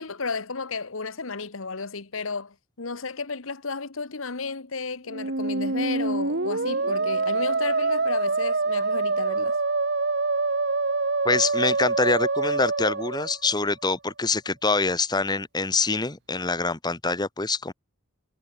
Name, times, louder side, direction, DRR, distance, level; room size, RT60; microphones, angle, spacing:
voice 1, 0.0-9.6, left 4 dB, 75° left, 1.4 m, -33 dB
Musical instrument, 5.1-13.8, right 3 dB, 55° right, 1.9 m, -25 dB
voice 2, 11.2-17.7, left 3 dB, 20° left, 1.3 m, -25 dB
head